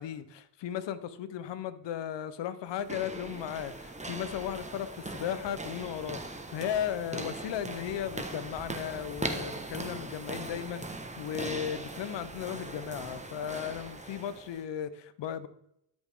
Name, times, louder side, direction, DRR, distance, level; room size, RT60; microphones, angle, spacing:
voice 1, 0.0-15.5, left 9 dB, 85° left, 0.8 m, -36 dB
sound 1, 2.7-14.6, right 2 dB, 15° right, 1.3 m, -40 dB
12.5 x 5.2 x 3.6 m
cardioid pair, 65°, 42 cm